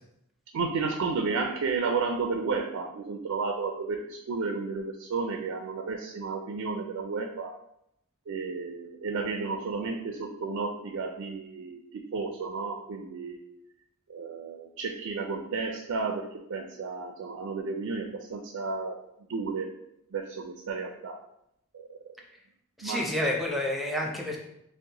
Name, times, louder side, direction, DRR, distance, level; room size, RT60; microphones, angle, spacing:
voice 1, 0.5-7.5 8.3-13.4 14.1-19.0 19.3-19.7 20.1-21.2 21.7-22.2 22.8-23.1, right 4 dB, 70° right, 4 dB, 0.4 m, -32 dB
voice 2, 22.8-24.4, left 1 dB, ahead, -1 dB, 0.6 m, -29 dB
6.2 x 2.1 x 2.8 m, 0.79 s
head